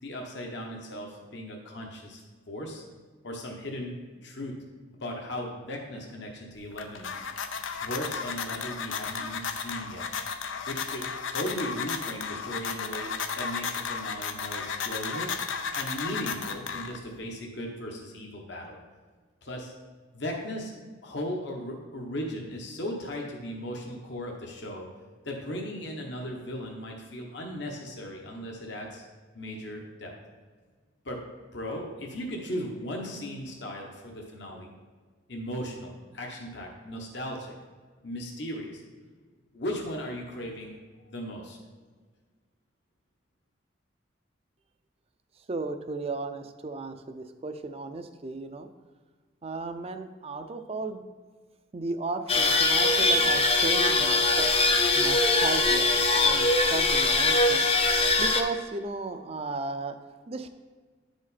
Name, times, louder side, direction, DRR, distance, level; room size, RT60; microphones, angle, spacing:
voice 1, 0.0-2.2 2.5-2.8 3.2-4.6 5.0-7.1 7.8-10.1 10.7-15.3 15.7-18.8 19.4-19.7 20.1-20.7 21.0-24.9 25.2-29.1 29.3-30.1 31.0-31.2 31.5-34.7 35.3-37.5 38.0-38.8 39.5-40.8 41.1-41.6, equal, 65° left, 0 dB, 1.1 m, -37 dB
sound 1, 6.6-17.2, left 6 dB, 90° left, 0.6 m, -34 dB
voice 2, 45.5-48.7 49.4-51.0 51.7-54.5 55.0-55.9 56.2-57.7 58.2-60.0 60.3-60.5, right 3 dB, 30° right, 8 dB, 0.5 m, -35 dB
sound 2, 52.3-58.4, left 3 dB, 30° left, 0.6 m, -22 dB
9.8 x 5.0 x 4.1 m, 1.5 s
head